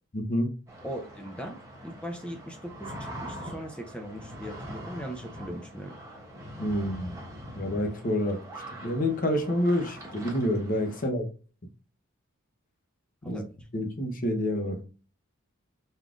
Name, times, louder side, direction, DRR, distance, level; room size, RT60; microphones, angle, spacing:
voice 1, 0.1-0.5 6.6-7.1 7.5-8.4 8.8-11.3 13.2-13.4 13.7-14.8, left 1 dB, 40° left, 0.9 m, -28 dB
sound 1, 0.7-11.1, equal, 15° right, 1.1 m, -43 dB
voice 2, 0.8-1.6 1.8-6.0 13.2-13.5, equal, 5° left, 0.5 m, -39 dB
5.4 x 3.6 x 2.4 m
head